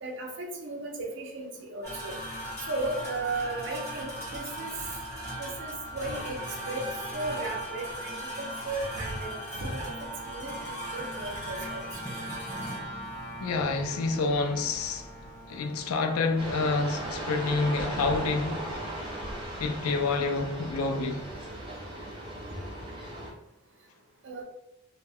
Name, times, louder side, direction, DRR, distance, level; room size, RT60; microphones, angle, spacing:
voice 1, 0.0-2.1 2.7-4.7 5.4-6.4 6.7-6.9 7.1-9.9 10.3-11.8 24.2-24.4, right 2 dB, 60° right, 0.6 m, -35 dB
sound 1, 1.8-19.4, right 1 dB, 10° left, 1.0 m, -39 dB
voice 2, 13.4-15.1 15.5-18.7 19.6-21.3, left 3 dB, 90° left, 0.4 m, -28 dB
sound 2, 16.4-23.3, right 1 dB, 25° right, 0.8 m, -37 dB
2.2 x 2.1 x 3.4 m
head